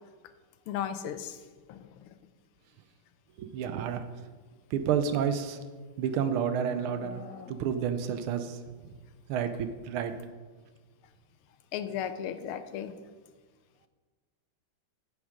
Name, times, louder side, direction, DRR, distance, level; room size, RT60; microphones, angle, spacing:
voice 1, 0.7-1.4 1.7-1.8 11.7-12.9, left 9 dB, 80° left, 11 dB, 1.5 m, -35 dB
voice 2, 3.4-4.0 4.7-5.6 6.0-7.2 7.5-8.6 9.3-10.1, right 8 dB, 85° right, 10 dB, 1.5 m, -30 dB
Livestock farm animals working animals, 4.8-8.0, left 6 dB, 65° left, 1.0 m, -49 dB
9.5 x 6.2 x 5.1 m, 1.4 s
omnidirectional pair, 2.4 m